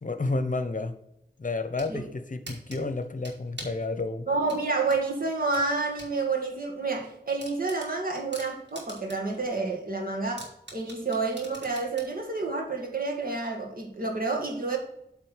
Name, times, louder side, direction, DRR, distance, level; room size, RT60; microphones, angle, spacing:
voice 1, 0.0-0.9 1.4-4.3, left 3 dB, 45° left, 9 dB, 0.9 m, -31 dB
sound 1, 1.5-1.9 2.5-3.8 4.5-6.1 6.5-6.6 7.0-7.1 7.4-9.4 9.7-9.8 10.4-12.1, right 1 dB, 80° right, 2.4 m, -43 dB
voice 2, 4.3-14.8, right 3 dB, 55° right, 0 dB, 2.1 m, -29 dB
8.3 x 3.7 x 6.6 m, 0.80 s
wide cardioid pair, 80°, 18 cm